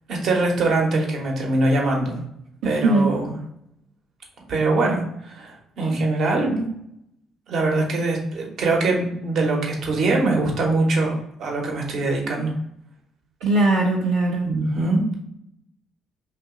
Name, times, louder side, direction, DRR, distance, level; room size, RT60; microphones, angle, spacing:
voice 1, 0.1-2.1 2.6-3.3 4.5-6.7 7.5-12.5 14.4-15.2, right 2 dB, 65° right, 0 dB, 0.9 m, -22 dB
voice 2, 2.6-3.2 13.4-14.5, right 2 dB, 85° right, -6 dB, 0.6 m, -20 dB
2.9 x 2.5 x 3.6 m, 0.76 s
hypercardioid pair, 55°, 0 cm